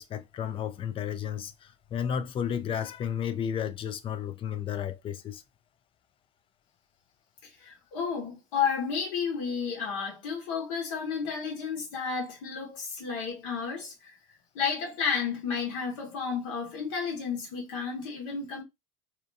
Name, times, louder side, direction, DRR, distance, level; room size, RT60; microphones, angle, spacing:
voice 1, 0.0-5.4, left 8 dB, 30° left, 0.4 m, -33 dB
voice 2, 7.6-14.1 14.5-18.6, left 6 dB, 75° left, 1.1 m, -32 dB
2.7 x 2.3 x 2.6 m
supercardioid pair, 105°, 17 cm